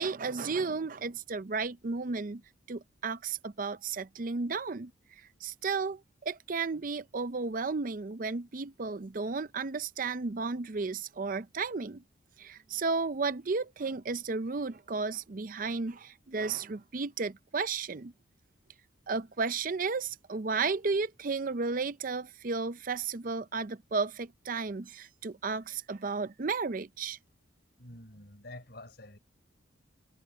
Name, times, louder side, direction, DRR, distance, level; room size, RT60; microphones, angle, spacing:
voice 1, 0.0-2.4 2.7-12.0 12.4-18.1 19.1-27.2, right 4 dB, 45° right, 0.5 m, -33 dB
voice 2, 27.8-29.2, left 1 dB, 55° left, 5.5 m, -48 dB
head